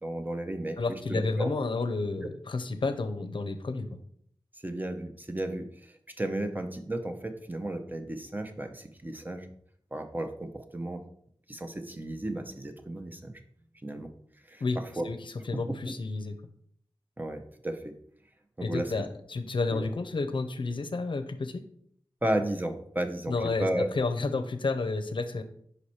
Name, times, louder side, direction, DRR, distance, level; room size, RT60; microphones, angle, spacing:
voice 1, 0.0-1.5 4.6-9.5 9.9-11.0 11.5-13.3 13.8-14.1 14.5-15.1 15.7-15.8 17.2-17.9 18.6-18.9 19.7-19.9 22.2-23.9, right 1 dB, 20° right, 6 dB, 0.6 m, -34 dB
voice 2, 0.8-4.0 14.6-14.8 15.0-15.2 15.5-16.4 18.6-21.6 23.3-23.7 23.9-25.4, left 3 dB, 65° left, 9 dB, 0.5 m, -31 dB
5.3 x 4.7 x 4.2 m, 0.65 s
wide cardioid pair, 75°, 9 cm